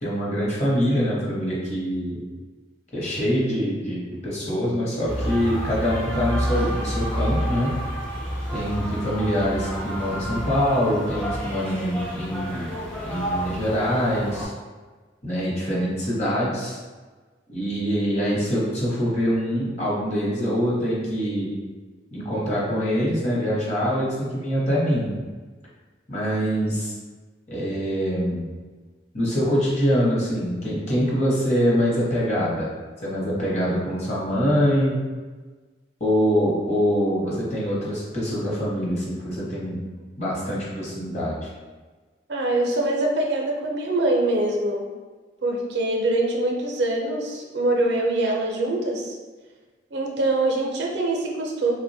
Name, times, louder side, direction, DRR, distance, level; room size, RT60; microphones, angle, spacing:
voice 1, 0.0-2.2 2.9-7.7 8.5-12.7 13.1-14.5 15.2-16.8 17.5-21.5 22.1-25.2 26.1-26.9 27.5-28.5 29.1-32.7 33.0-35.0 36.0-39.8 40.2-41.5, equal, 35° left, -6 dB, 0.7 m, -24 dB
sound 1, 5.0-14.4, equal, 5° left, 0.4 m, -29 dB
voice 2, 42.3-44.9 45.4-49.2 49.9-51.7, right 2 dB, 70° right, 0 dB, 0.5 m, -24 dB
3.3 x 2.1 x 2.6 m, 1.4 s
head